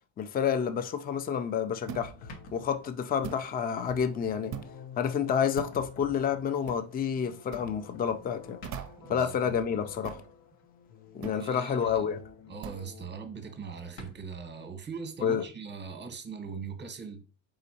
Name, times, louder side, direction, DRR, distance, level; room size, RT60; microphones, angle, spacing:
voice 1, 0.2-4.6 5.0-8.6 9.1-10.2 11.1-12.2 15.2-15.4, left 7 dB, 20° left, 0.4 m, -29 dB
sound 1, 1.7-13.6, left 6 dB, 55° left, 0.7 m, -50 dB
sound 2, 1.9-2.2 3.2-3.5 4.5-4.8 5.6-5.8 6.7-6.9 7.5-7.7 8.6-9.1 10.0-10.3 11.2-11.5 12.6-12.9, right 8 dB, 40° right, 0.5 m, -41 dB
sound 3, 2.3-3.2 3.8-4.1 4.6-4.7 5.9-6.0 7.7-8.0 8.3-8.4 8.6-9.2 11.2-11.7 12.0-12.3 12.6-12.7 12.9-13.0 13.3-13.4 13.7-14.3, equal, 80° left, 1.2 m, -50 dB
voice 2, 9.0-9.3 11.4-12.1 12.5-17.2, right 5 dB, 20° right, 0.9 m, -41 dB
4.1 x 3.8 x 2.7 m
supercardioid pair, 95°, 47 cm